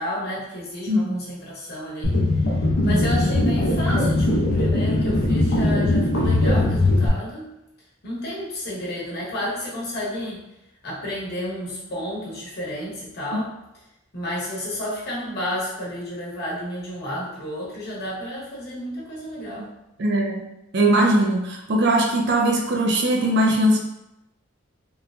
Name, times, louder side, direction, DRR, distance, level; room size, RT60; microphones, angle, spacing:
voice 1, 0.0-2.2 2.8-7.5 8.0-10.4 10.8-13.5 14.1-19.7, left 1 dB, 55° left, -6 dB, 1.0 m, -31 dB
voice 2, 0.9-1.2 2.8-3.1 13.3-13.4 19.6-19.7 20.0-20.5 20.7-23.8, right 1 dB, 60° right, 1 dB, 0.5 m, -20 dB
sound 1, 2.0-7.1, left 1 dB, 75° left, 0.6 m, -20 dB
3.0 x 2.1 x 2.4 m, 0.90 s
head